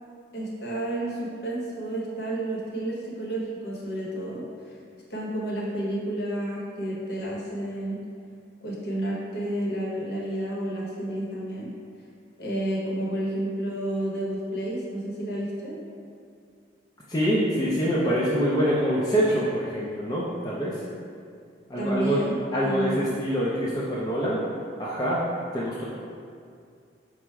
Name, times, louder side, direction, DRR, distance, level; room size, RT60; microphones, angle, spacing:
voice 1, 0.3-4.4 5.1-8.0 8.6-11.7 12.4-15.8 21.8-22.4 22.6-23.1, right 1 dB, 60° left, -4 dB, 0.8 m, -30 dB
voice 2, 17.1-20.8 21.7-22.2 22.5-24.4 24.8-25.2 25.5-25.8, equal, 20° left, -7 dB, 0.4 m, -25 dB
4.5 x 2.0 x 4.5 m, 2.3 s
head